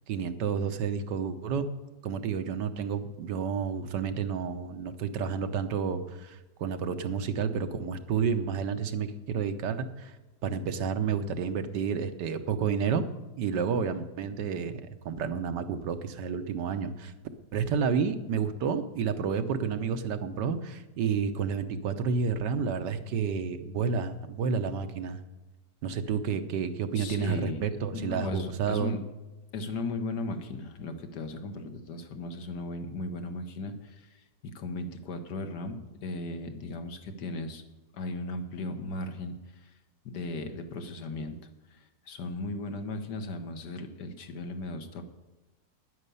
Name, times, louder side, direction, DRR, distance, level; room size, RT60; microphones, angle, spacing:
voice 1, 0.1-1.7 2.0-10.1 10.4-13.0 13.4-14.7 15.0-17.1 17.5-25.2 25.8-28.9, right 6 dB, 80° right, 9 dB, 1.5 m, -30 dB
voice 2, 26.9-27.6 27.9-29.0 29.5-37.6 37.9-39.3 39.6-39.7 40.0-41.4 41.7-45.0, left 2 dB, 75° left, 7 dB, 1.7 m, -36 dB
10.0 x 9.7 x 6.9 m, 1.1 s
omnidirectional pair, 1.8 m